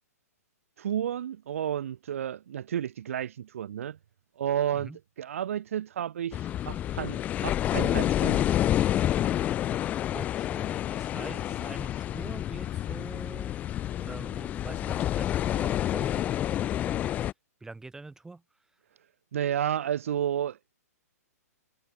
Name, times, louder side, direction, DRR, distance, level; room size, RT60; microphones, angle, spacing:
voice 1, 0.8-4.0 4.4-4.9 5.2-8.5 19.3-20.6, right 10 dB, 55° right, 1.7 m, -31 dB
sound 1, 6.3-17.3, left 12 dB, 15° left, 0.4 m, -29 dB
voice 2, 10.1-13.6 14.0-17.0 17.6-18.4, right 3 dB, 5° right, 4.4 m, -44 dB
figure-of-eight pair, 120°, 9 cm